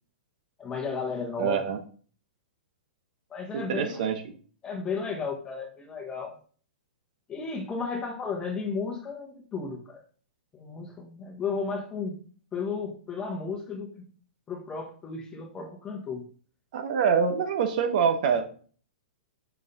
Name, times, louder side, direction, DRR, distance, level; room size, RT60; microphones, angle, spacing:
voice 1, 0.6-1.7 3.3-4.1 4.6-6.3 7.3-10.0 10.5-12.2 12.5-14.0 14.5-16.3, left 5 dB, 15° left, 3 dB, 1.2 m, -34 dB
voice 2, 1.4-1.8 3.5-4.2 16.7-18.4, right 7 dB, 55° right, 7 dB, 1.1 m, -25 dB
5.6 x 4.8 x 4.0 m, 0.43 s
hypercardioid pair, 150°, 5 cm